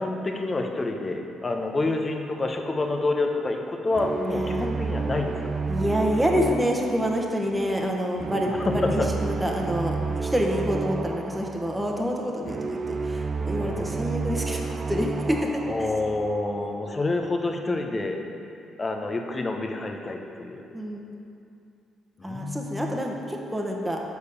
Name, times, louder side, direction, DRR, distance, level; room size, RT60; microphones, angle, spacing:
voice 1, 0.0-5.4 8.5-9.1 13.6-14.0 15.7-18.2 18.8-20.6 22.2-23.0, left 2 dB, 30° left, 3 dB, 1.0 m, -28 dB
sound 1, 3.9-17.0, right 4 dB, 45° right, 0.3 m, -31 dB
voice 2, 4.2-4.7 5.7-15.4 15.8-15.9 20.7-21.0 22.2-24.0, equal, 10° right, 0 dB, 1.3 m, -27 dB
6.5 x 5.0 x 6.9 m, 2.6 s
supercardioid pair, 55°, 0 cm